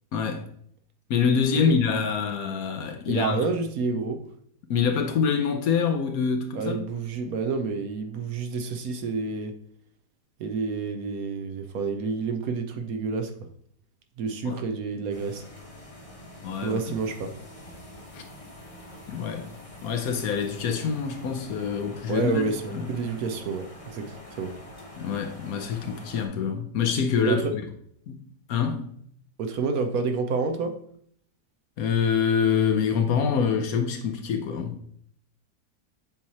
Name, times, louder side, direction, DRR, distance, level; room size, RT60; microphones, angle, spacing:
voice 1, 0.1-0.5 1.1-3.4 4.7-6.8 14.4-14.6 16.4-16.8 18.1-18.2 19.1-19.5 19.8-22.9 25.0-27.4 28.1-28.2 28.5-28.9 31.8-34.8, left 6 dB, 65° left, 1.0 m, -25 dB
voice 2, 3.1-4.2 6.5-9.6 10.4-13.3 14.2-15.4 16.6-17.3 22.1-24.5 27.2-27.5 29.4-30.8, right 4 dB, 65° right, 1.0 m, -29 dB
sound 1, 15.1-26.3, left 1 dB, 25° left, 0.9 m, -45 dB
7.4 x 3.0 x 4.1 m
omnidirectional pair, 1.8 m